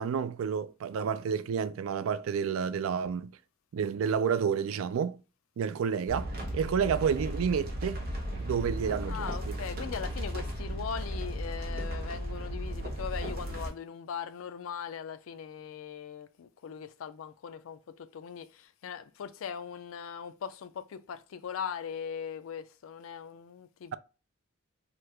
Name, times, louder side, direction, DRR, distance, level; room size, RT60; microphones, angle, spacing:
voice 1, 0.0-3.3 3.7-5.2 5.6-8.0 8.4-9.6, right 7 dB, 80° right, 0.3 m, -30 dB
sound 1, 6.1-13.7, equal, 45° right, 0.8 m, -35 dB
voice 2, 9.1-24.0, left 7 dB, 80° left, 0.4 m, -40 dB
2.9 x 2.3 x 3.2 m
head